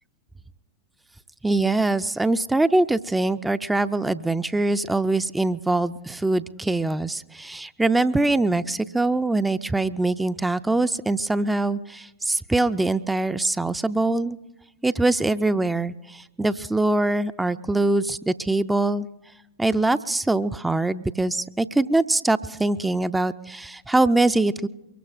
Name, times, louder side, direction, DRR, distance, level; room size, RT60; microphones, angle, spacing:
voice 1, 1.4-14.4 14.8-19.1 19.6-24.7, right 2 dB, 5° right, 12 dB, 0.5 m, -23 dB
24.0 x 22.0 x 2.5 m, 0.97 s
figure-of-eight pair, 90°, 0 cm